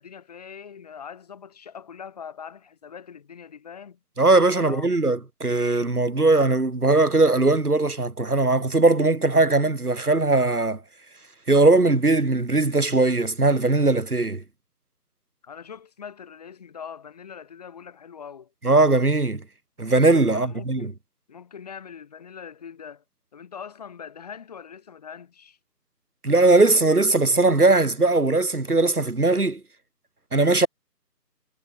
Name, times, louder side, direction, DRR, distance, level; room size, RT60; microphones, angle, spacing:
voice 1, 0.0-4.0 4.5-4.9 15.4-18.5 20.3-20.9 21.3-23.0 23.3-25.6, left 7 dB, 25° left, 7.5 m, -42 dB
voice 2, 4.2-10.8 11.5-14.4 18.6-19.4 19.8-20.9 26.2-29.6 30.3-30.7, right 2 dB, 65° right, 3.9 m, -19 dB
figure-of-eight pair, 160°, 49 cm